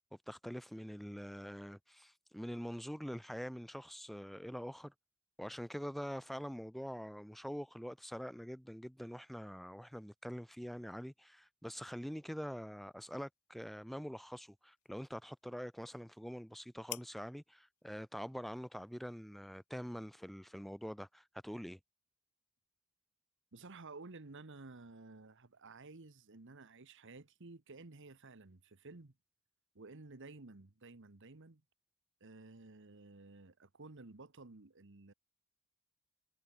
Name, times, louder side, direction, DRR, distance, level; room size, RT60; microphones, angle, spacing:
voice 1, 0.3-4.9 5.4-21.8, equal, ahead, 0.5 m, -45 dB
sound 1, 12.6-20.3, left 18 dB, 85° left, 0.6 m, -57 dB
voice 2, 23.5-29.1 29.7-31.6 32.2-35.1, right 3 dB, 60° right, 1.3 m, -53 dB
head